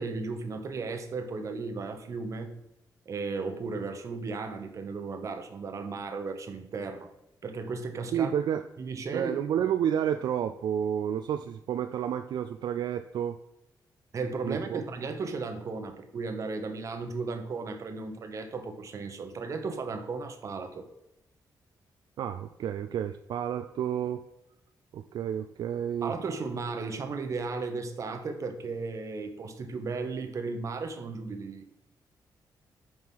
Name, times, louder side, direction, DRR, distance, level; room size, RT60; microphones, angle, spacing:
voice 1, 0.0-2.5 3.1-7.1 7.4-8.3 8.8-9.3 14.1-20.9 26.0-31.9, right 4 dB, 45° right, 6 dB, 0.9 m, -35 dB
voice 2, 8.1-8.6 9.1-13.4 14.4-14.8 22.2-24.2 24.9-26.1, right 9 dB, 70° right, 8 dB, 0.3 m, -30 dB
5.9 x 4.8 x 5.4 m, 0.88 s
wide cardioid pair, 145°, 8 cm